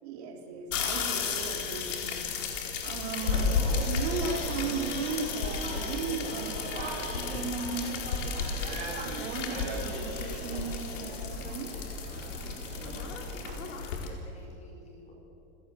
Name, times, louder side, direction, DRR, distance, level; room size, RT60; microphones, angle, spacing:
voice 1, 0.0-2.2 2.8-8.0 9.0-11.7, right 5 dB, 60° right, 2 dB, 3.9 m, -36 dB
sound 1, 0.7-14.1, left 5 dB, 80° left, 4.4 m, -33 dB
sound 2, 3.2-13.8, right 3 dB, 20° right, 5.0 m, -40 dB
voice 2, 12.8-15.2, left 1 dB, 20° left, 1 dB, 4.8 m, -52 dB
29.0 x 17.5 x 7.9 m, 2.9 s
supercardioid pair, 170°, 37 cm